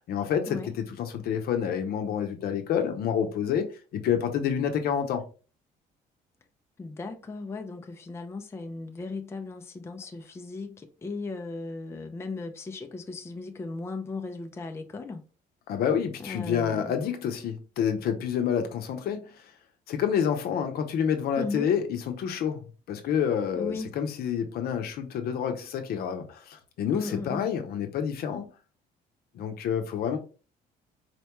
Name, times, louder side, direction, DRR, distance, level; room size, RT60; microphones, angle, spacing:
voice 1, 0.0-5.3 15.7-19.4 19.9-22.6 22.9-28.5 29.3-30.2, left 8 dB, 65° left, 0.7 m, -28 dB
voice 2, 6.8-15.2 16.2-16.9 21.4-21.7 23.5-23.9 26.9-27.5, left 3 dB, 15° left, 0.4 m, -37 dB
4.2 x 2.2 x 2.9 m
cardioid pair, 110°, 17 cm